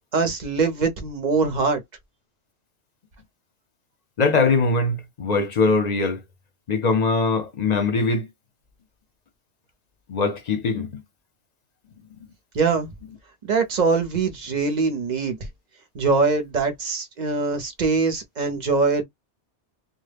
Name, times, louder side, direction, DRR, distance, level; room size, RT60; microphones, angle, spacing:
voice 1, 0.1-1.8 12.5-12.9 13.4-15.4 15.9-19.0, right 4 dB, 50° right, 0.6 m, -23 dB
voice 2, 4.2-6.2 6.7-8.3 10.1-11.0, left 3 dB, 50° left, 0.6 m, -22 dB
2.1 x 2.0 x 3.3 m
omnidirectional pair, 1.2 m